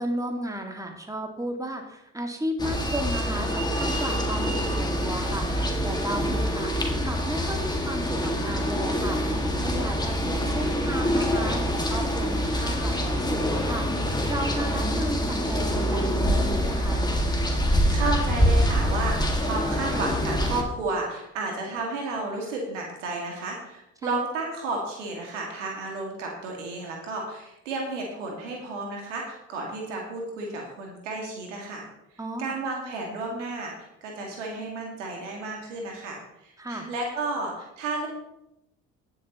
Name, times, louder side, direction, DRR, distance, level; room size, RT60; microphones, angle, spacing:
voice 1, 0.0-6.7 7.0-9.2 9.6-17.1 24.0-24.1 32.2-32.6 36.6-36.9, equal, 10° right, 3 dB, 2.1 m, -34 dB
sound 1, 2.6-20.6, equal, 10° left, 2.0 m, -25 dB
voice 2, 17.5-31.8 32.4-38.1, right 3 dB, 80° right, 0 dB, 2.1 m, -32 dB
18.0 x 7.0 x 3.0 m, 0.86 s
figure-of-eight pair, 45°, 36 cm